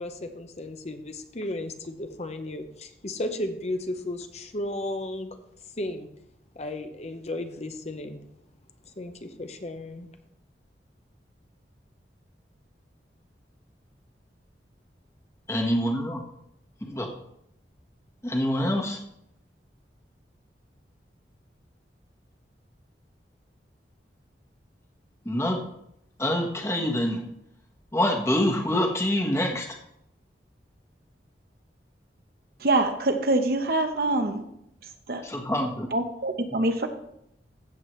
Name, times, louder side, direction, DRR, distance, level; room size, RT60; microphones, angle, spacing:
voice 1, 0.0-5.4 5.8-6.1 6.5-8.2 9.0-10.1, left 1 dB, 40° left, 7 dB, 0.9 m, -34 dB
voice 2, 15.5-16.2 16.8-17.1 18.2-19.0 25.2-25.6 26.2-27.2 27.9-29.7 35.2-35.9, left 1 dB, 15° left, 1 dB, 1.3 m, -25 dB
voice 3, 32.6-34.5 35.1-35.2 35.9-36.9, right 2 dB, 60° right, 7 dB, 0.9 m, -25 dB
14.5 x 7.5 x 3.2 m, 0.77 s
head